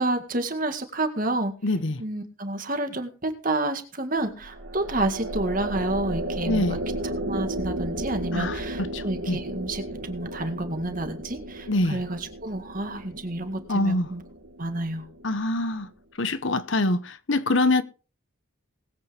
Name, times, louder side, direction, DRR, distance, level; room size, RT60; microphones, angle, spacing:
voice 1, 0.0-1.5 2.0-6.8 7.3-14.2 14.6-15.1, right 2 dB, 40° right, 2.0 m, -29 dB
voice 2, 1.6-2.0 6.5-6.8 8.3-8.5 8.9-9.4 11.7-12.0 13.7-14.1 15.2-15.9 16.2-17.8, left 2 dB, 65° left, 1.1 m, -24 dB
sound 1, 4.2-15.6, right 1 dB, 70° right, 2.5 m, -34 dB
20.0 x 8.5 x 3.5 m
head